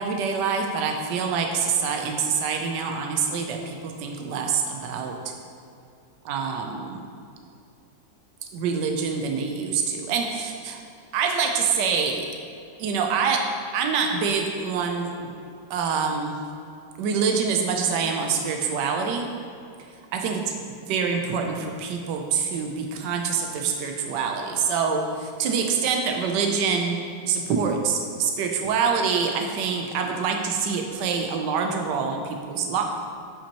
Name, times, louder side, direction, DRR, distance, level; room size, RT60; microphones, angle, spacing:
voice 1, 0.0-5.3 6.3-7.0 8.5-10.8 11.1-12.3 12.8-15.3 15.7-16.4 17.0-19.3 20.1-27.0 27.3-32.8, right 5 dB, 80° right, 3 dB, 1.3 m, -26 dB
9.7 x 5.7 x 2.9 m, 2.6 s
omnidirectional pair, 1.8 m